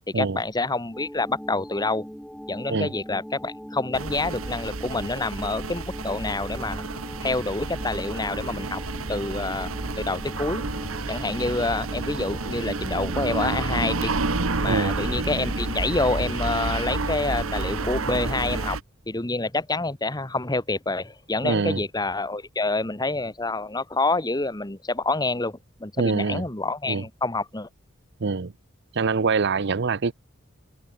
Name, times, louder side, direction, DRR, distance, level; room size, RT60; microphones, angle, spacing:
voice 1, 0.1-2.0 2.5-6.9 7.2-8.8 9.1-9.7 10.0-10.6 11.1-14.1 14.6-18.8 19.1-27.7, left 2 dB, 20° left, 1.4 m, -27 dB
sound 1, 0.9-18.7, equal, 5° left, 1.7 m, -40 dB
sound 2, 3.9-18.8, right 3 dB, 90° right, 1.6 m, -30 dB
voice 2, 14.7-15.0 21.4-21.8 26.0-26.4 26.9-27.0 28.2-28.5 28.9-30.1, right 4 dB, 55° right, 0.7 m, -24 dB
head